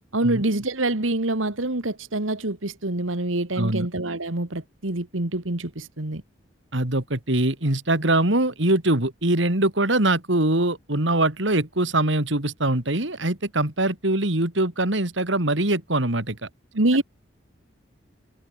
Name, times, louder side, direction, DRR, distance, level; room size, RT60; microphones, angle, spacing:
voice 1, 0.1-6.2 16.7-17.0, right 2 dB, 90° right, 2.2 m, -26 dB
voice 2, 3.6-3.9 6.7-16.5, right 2 dB, 75° right, 3.1 m, -23 dB
head